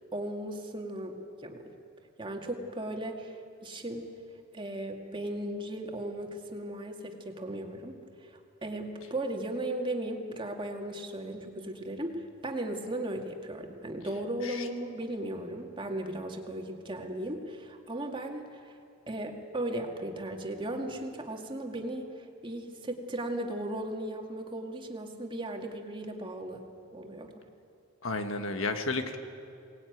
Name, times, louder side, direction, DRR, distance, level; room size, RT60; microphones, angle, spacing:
voice 1, 0.1-1.7 2.2-3.4 3.6-4.1 4.5-18.7 19.1-26.6 26.9-27.4, right 1 dB, 25° right, 2 dB, 2.1 m, -36 dB
voice 2, 28.0-29.2, left 3 dB, 75° left, 7 dB, 1.6 m, -32 dB
23.0 x 19.0 x 9.4 m, 2.5 s
head